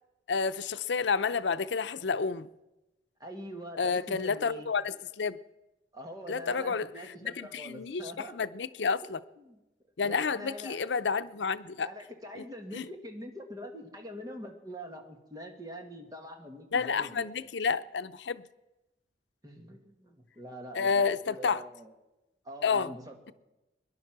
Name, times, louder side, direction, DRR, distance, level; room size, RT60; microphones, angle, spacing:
voice 1, 0.3-2.5 3.8-5.4 6.3-6.9 7.2-9.2 10.0-11.9 12.4-12.5 12.7-12.9 16.7-18.4 20.7-21.6 22.6-22.9, left 5 dB, 90° left, 0.6 m, -30 dB
voice 2, 3.2-4.7 5.9-8.3 9.0-9.6 10.0-10.8 11.8-17.3 19.4-21.9 22.4-23.2, equal, 20° right, 1.9 m, -44 dB
22.0 x 11.0 x 6.0 m
head